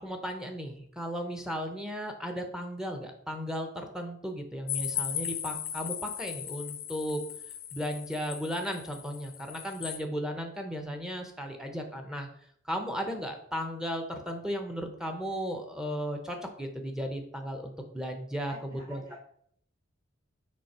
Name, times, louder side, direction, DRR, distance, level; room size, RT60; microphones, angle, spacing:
voice 1, 0.0-7.2 7.7-12.3 12.6-19.0, equal, 5° right, 3 dB, 0.9 m, -35 dB
sound 1, 4.7-10.0, left 9 dB, 50° left, 0.7 m, -37 dB
voice 2, 18.4-19.2, right 1 dB, 50° right, -2 dB, 3.0 m, -49 dB
6.2 x 5.0 x 4.3 m, 0.66 s
head